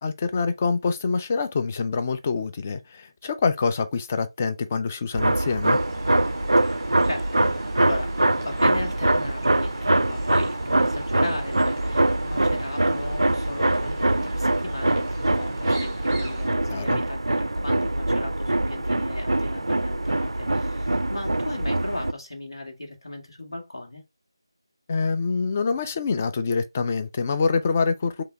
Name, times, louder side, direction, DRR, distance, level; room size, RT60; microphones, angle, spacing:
voice 1, 0.0-5.8 16.7-17.0 24.9-28.2, left 4 dB, 20° left, 0.3 m, -25 dB
sound 1, 5.1-22.1, right 1 dB, 75° right, 0.3 m, -23 dB
sound 2, 5.6-16.5, right 1 dB, 5° right, 1.0 m, -43 dB
voice 2, 6.6-24.0, left 2 dB, 65° left, 1.8 m, -36 dB
7.5 x 2.7 x 2.3 m
figure-of-eight pair, 160°, 3 cm